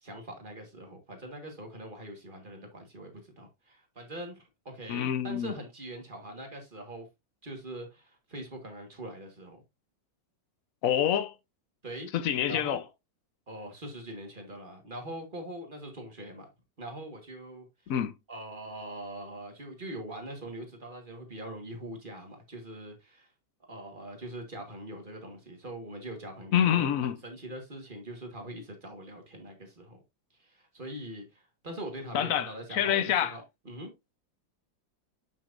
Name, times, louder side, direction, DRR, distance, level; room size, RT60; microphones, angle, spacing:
voice 1, 0.0-7.1 7.4-9.6 11.8-12.8 13.5-16.5 16.8-17.7 18.3-23.3 23.7-30.0 30.4-33.9, right 1 dB, 30° right, 1.6 m, -42 dB
voice 2, 4.9-5.5 10.8-11.3 12.1-12.8 17.9-18.2 26.5-27.2 32.1-33.4, left 10 dB, 60° left, 1.0 m, -27 dB
7.6 x 5.9 x 2.5 m
omnidirectional pair, 1.9 m